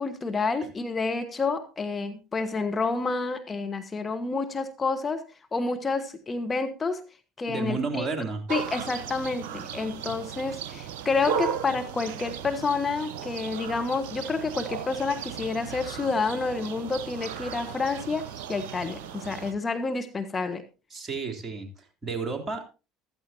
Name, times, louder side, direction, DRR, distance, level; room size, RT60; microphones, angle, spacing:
voice 1, 0.0-5.3 5.5-7.0 7.4-8.1 8.5-20.6, left 4 dB, 25° left, 7 dB, 1.2 m, -29 dB
voice 2, 7.5-8.4 20.9-22.6, right 4 dB, 30° right, 4 dB, 3.4 m, -32 dB
sound 1, 8.5-19.5, right 8 dB, 65° right, 1.2 m, -36 dB
15.0 x 13.5 x 2.9 m, 0.32 s
hypercardioid pair, 65°, 0 cm